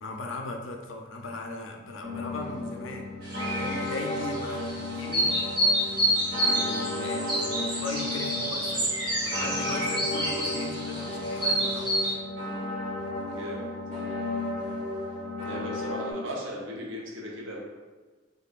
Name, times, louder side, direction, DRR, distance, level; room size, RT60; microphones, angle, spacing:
voice 1, 0.0-3.1 3.6-5.4 6.4-8.9 9.2-12.0, left 2 dB, 85° left, 3 dB, 0.6 m, -38 dB
sound 1, 2.0-16.1, left 2 dB, 40° right, 1.4 m, -34 dB
sound 2, 3.2-12.1, right 1 dB, 25° right, 1.2 m, -29 dB
voice 2, 13.3-13.7 15.4-17.6, equal, 80° right, -3 dB, 1.0 m, -37 dB
6.5 x 2.6 x 2.5 m, 1.3 s
head